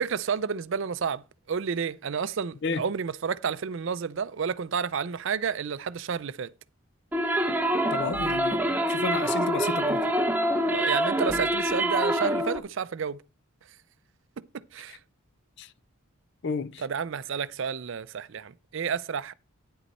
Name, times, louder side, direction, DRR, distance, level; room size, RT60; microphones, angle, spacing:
voice 1, 0.0-6.5 10.7-13.2 14.5-15.0 16.8-19.3, right 6 dB, 60° right, 0.4 m, -30 dB
sound 1, 7.1-12.6, right 1 dB, 10° right, 0.6 m, -26 dB
voice 2, 7.9-8.6 8.9-10.1 15.6-15.7 16.4-16.8, left 4 dB, 55° left, 0.5 m, -31 dB
9.7 x 8.2 x 4.2 m
head